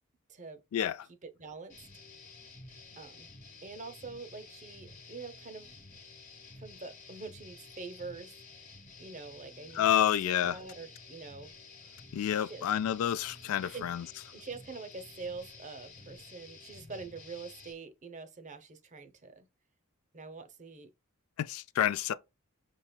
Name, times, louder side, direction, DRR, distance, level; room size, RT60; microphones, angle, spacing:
voice 1, 0.3-0.6 1.2-1.9 3.0-3.3 3.6-5.7 6.5-11.6 12.3-12.6 13.6-13.9 14.3-19.5 20.1-20.9, right 4 dB, 35° right, 0.6 m, -45 dB
sound 1, 1.7-17.7, left 3 dB, 35° left, 1.1 m, -52 dB
voice 2, 9.7-10.6 12.1-14.1 21.4-22.1, left 10 dB, 70° left, 0.3 m, -29 dB
5.7 x 2.8 x 2.2 m
head